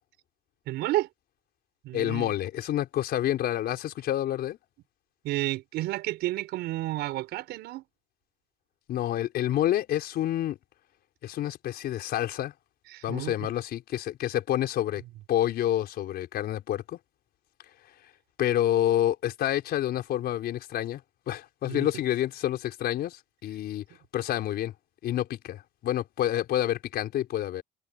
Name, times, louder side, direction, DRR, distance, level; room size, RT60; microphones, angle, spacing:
voice 1, 0.7-1.1 1.8-2.3 5.2-7.8 12.9-13.5 21.7-21.9, right 16 dB, 85° right, 5.0 m, -31 dB
voice 2, 1.9-4.6 8.9-10.6 11.2-12.5 13.0-15.0 15.3-17.0 18.4-21.0 21.3-23.8 24.1-24.7 25.0-27.6, left 12 dB, 70° left, 5.0 m, -28 dB
cardioid pair, 110°, 17 cm